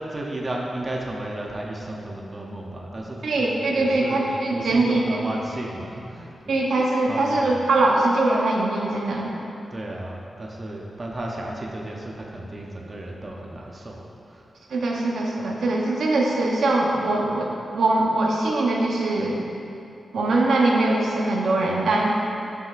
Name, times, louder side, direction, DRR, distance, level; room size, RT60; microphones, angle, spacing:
voice 1, 0.0-3.5 3.7-6.5 7.1-7.6 9.7-14.5, right 1 dB, 30° right, -1 dB, 0.6 m, -33 dB
voice 2, 3.2-5.2 6.5-9.3 14.7-17.5 17.7-19.5 20.1-22.1, right 2 dB, 85° right, -1 dB, 0.8 m, -22 dB
8.5 x 5.7 x 2.5 m, 2.7 s
wide cardioid pair, 135°, 0 cm